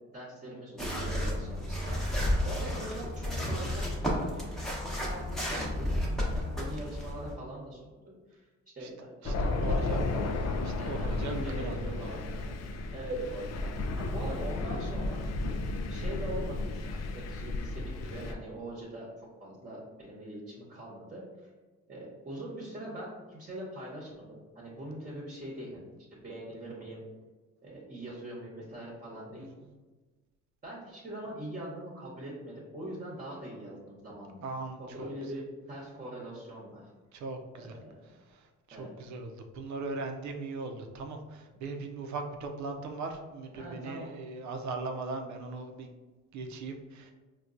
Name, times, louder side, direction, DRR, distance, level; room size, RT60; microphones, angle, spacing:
voice 1, 0.1-4.3 4.8-5.9 6.2-8.5 8.7-10.3 10.8-12.5 12.9-15.2 15.9-21.5 21.9-27.1 27.6-29.5 30.6-34.5 34.8-36.9 37.6-38.1 38.7-38.9 41.6-41.7 43.5-44.1, right 1 dB, 30° right, -5 dB, 0.9 m, -42 dB
sound 1, 0.8-7.3, left 1 dB, ahead, 0.8 m, -32 dB
Thunder, 9.2-18.3, left 2 dB, 60° left, 0.4 m, -33 dB
voice 2, 9.2-10.0 10.6-12.1 29.6-29.7 34.4-35.1 37.1-37.8 38.3-45.9 46.3-47.1, right 3 dB, 70° right, 4 dB, 0.5 m, -39 dB
4.4 x 2.2 x 2.5 m, 1.3 s
cardioid pair, 90°, 30 cm